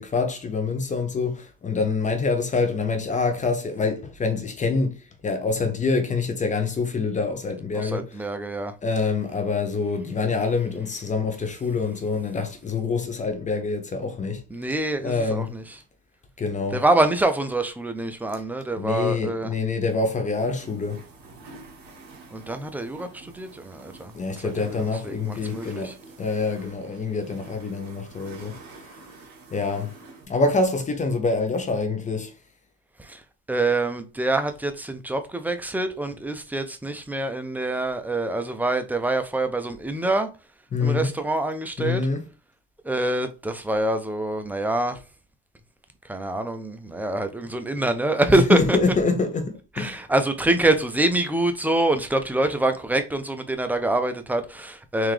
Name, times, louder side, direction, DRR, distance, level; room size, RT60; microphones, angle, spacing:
voice 1, 0.0-5.0 5.2-8.2 8.8-14.4 15.0-15.5 16.4-16.8 18.8-21.0 24.1-28.5 29.5-29.9 30.3-32.3 40.7-41.1 41.8-42.2 48.3-50.0, left 4 dB, 25° left, 0.8 m, -26 dB
voice 2, 7.7-8.7 14.5-15.6 16.7-19.5 22.3-24.1 24.7-25.9 33.0-33.2 33.5-40.3 40.8-42.0 42.8-45.0 46.1-48.8 49.8-55.1, right 2 dB, 5° right, 0.5 m, -25 dB
sound 1, 20.3-30.3, right 3 dB, 60° right, 1.8 m, -47 dB
3.7 x 2.9 x 3.2 m
supercardioid pair, 110°, 31 cm